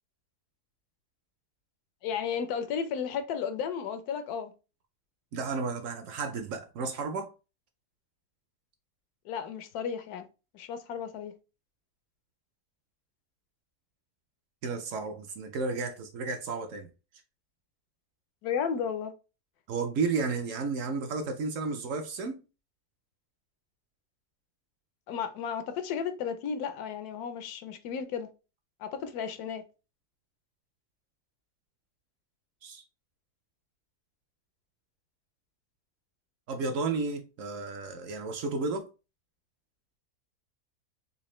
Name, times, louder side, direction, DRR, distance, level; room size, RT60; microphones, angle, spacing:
voice 1, 2.0-4.5 9.3-10.3 10.5-11.3 18.4-19.1 25.1-28.3 28.8-29.6, left 7 dB, 80° left, 1.1 m, -33 dB
voice 2, 5.3-7.3 14.6-16.9 19.7-22.4 32.6-32.8 36.5-38.9, right 4 dB, 70° right, 0.8 m, -32 dB
4.0 x 2.5 x 3.0 m
omnidirectional pair, 1.6 m